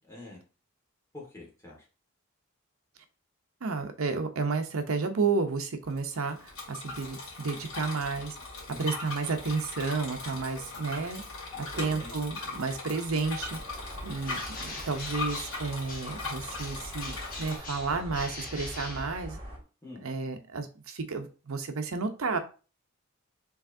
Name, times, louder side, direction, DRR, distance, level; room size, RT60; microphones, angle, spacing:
voice 1, 0.1-0.4 1.1-1.9 8.7-8.9 11.5-12.1 19.8-20.0, left 2 dB, 15° left, -3 dB, 1.6 m, -46 dB
voice 2, 3.6-8.4 8.8-11.2 11.8-13.6 14.0-19.4 20.0-22.4, right 4 dB, 75° right, 7 dB, 0.7 m, -31 dB
Bicycle, 5.8-17.6, left 3 dB, 80° left, 2.0 m, -39 dB
sound 1, 13.4-19.6, equal, 25° right, 1.3 m, -44 dB
Bird, 14.2-16.3 16.6-19.6, left 2 dB, 40° left, 1.3 m, -43 dB
4.7 x 3.3 x 2.6 m, 0.35 s
head